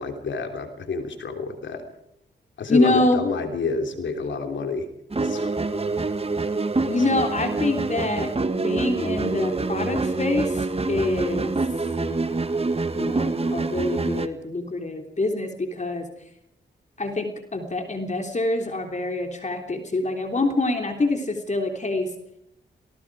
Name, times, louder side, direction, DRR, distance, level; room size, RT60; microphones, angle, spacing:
voice 1, 0.0-1.8 2.6-4.9 5.2-5.5 6.8-7.0, left 4 dB, 80° left, 5 dB, 3.4 m, -29 dB
voice 2, 2.7-3.2 6.8-10.6 10.9-11.6 12.9-16.1 17.0-22.1, left 2 dB, 40° left, 4 dB, 3.4 m, -25 dB
Dark loop, 5.1-14.3, right 3 dB, 30° right, 1.6 m, -26 dB
28.5 x 19.0 x 4.9 m, 0.75 s
cardioid pair, 60°, 19 cm